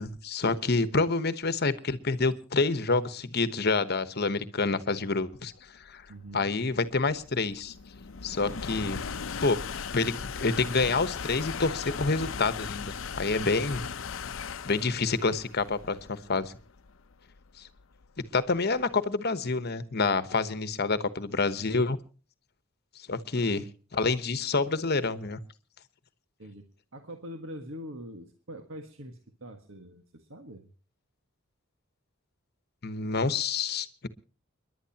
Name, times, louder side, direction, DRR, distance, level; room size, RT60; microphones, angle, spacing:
voice 1, 0.0-5.5 5.9-6.0 6.3-7.7 8.2-9.0 9.4-9.6 9.9-13.9 14.7-16.5 18.3-22.0 23.1-23.6 23.9-25.4 32.8-34.1, left 3 dB, 50° left, 13 dB, 1.1 m, -28 dB
sound 1, 5.5-18.8, left 6 dB, 65° left, 0.7 m, -38 dB
voice 2, 6.1-6.5 23.3-23.7 26.4-26.6 26.9-30.6, equal, 70° right, 5 dB, 1.6 m, -44 dB
30.0 x 11.0 x 2.9 m, 0.37 s
head